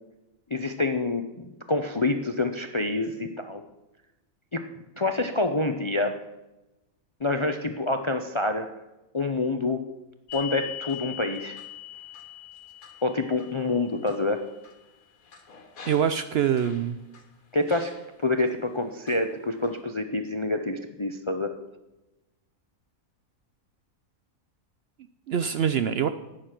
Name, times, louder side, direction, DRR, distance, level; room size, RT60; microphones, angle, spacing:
voice 1, 0.5-3.6 4.5-4.6 5.0-6.2 7.2-8.7 9.1-9.8 10.3-11.6 13.0-14.4 17.5-17.9 18.2-21.5, left 2 dB, 35° left, 7 dB, 0.4 m, -27 dB
sound 1, 10.3-17.3 17.7-18.5 19.1-19.8, left 11 dB, 85° left, 1.8 m, -43 dB
voice 2, 15.9-17.0 25.3-26.1, right 8 dB, 65° right, 11 dB, 0.7 m, -24 dB
11.5 x 9.2 x 5.9 m, 0.99 s
omnidirectional pair, 1.4 m